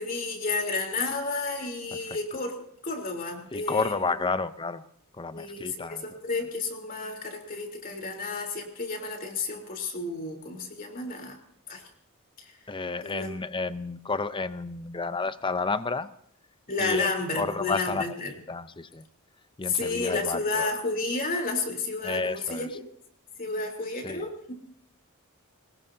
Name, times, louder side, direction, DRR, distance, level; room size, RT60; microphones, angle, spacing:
voice 1, 0.0-2.5 2.8-4.0 5.3-11.4 11.7-11.8 12.4-12.5 13.0-13.3 16.7-18.3 19.7-22.7 23.4-24.5, left 3 dB, 40° left, 2 dB, 3.6 m, -31 dB
voice 2, 3.5-4.8 5.1-6.2 12.7-16.1 16.8-17.1 17.4-18.1 18.5-19.0 19.6-20.7 22.0-22.7 24.0-24.3, left 4 dB, 25° left, 13 dB, 0.7 m, -31 dB
22.0 x 20.0 x 2.8 m, 0.66 s
head